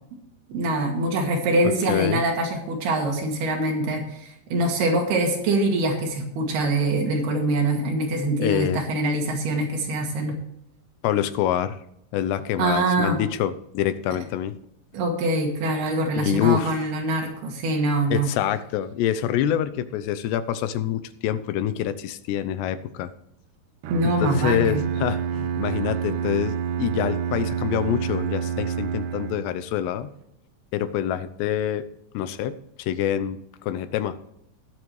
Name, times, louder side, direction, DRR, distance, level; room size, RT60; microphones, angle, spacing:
voice 1, 0.5-10.4 12.6-13.2 14.9-18.3 23.9-24.9, right 2 dB, 70° right, 1 dB, 4.1 m, -24 dB
voice 2, 1.9-2.2 8.4-8.8 11.0-11.8 12.1-14.6 16.2-16.9 18.1-23.1 24.0-30.1 30.7-31.8 32.1-34.2, left 10 dB, 90° left, 12 dB, 2.9 m, -26 dB
Bowed string instrument, 23.8-29.7, right 8 dB, 90° right, 1.9 m, -28 dB
19.5 x 7.8 x 3.2 m, 0.80 s
omnidirectional pair, 4.8 m